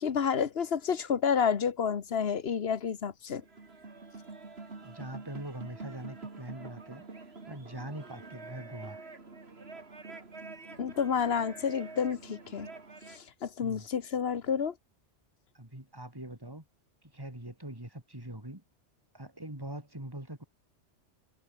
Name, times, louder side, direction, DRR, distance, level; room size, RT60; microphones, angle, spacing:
voice 1, 0.0-3.4 10.8-12.7 13.1-14.7, left 7 dB, 60° left, 1.3 m, -30 dB
sound 1, 3.4-13.2, right 3 dB, 65° right, 2.8 m, -47 dB
voice 2, 4.8-9.0 13.6-13.9 15.5-16.6 17.0-18.6 19.1-20.4, right 1 dB, 20° right, 4.4 m, -43 dB
omnidirectional pair, 1.2 m